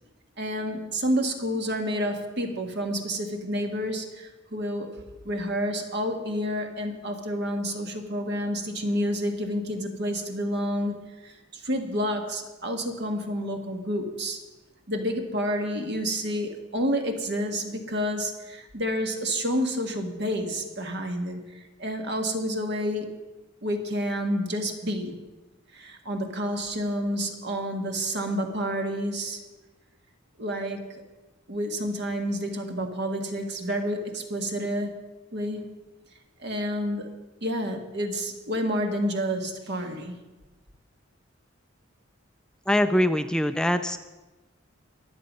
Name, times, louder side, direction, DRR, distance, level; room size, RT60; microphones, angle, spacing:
voice 1, 0.4-4.9 5.2-11.0 11.2-14.4 14.9-21.4 21.8-23.1 23.6-25.2 25.7-29.4 30.4-30.8 31.5-34.9 35.3-35.6 36.4-37.1 37.4-40.2, equal, 60° right, 5 dB, 1.7 m, -29 dB
voice 2, 42.7-44.0, left 1 dB, 5° left, 9 dB, 0.4 m, -23 dB
23.0 x 7.8 x 5.3 m, 1.1 s
head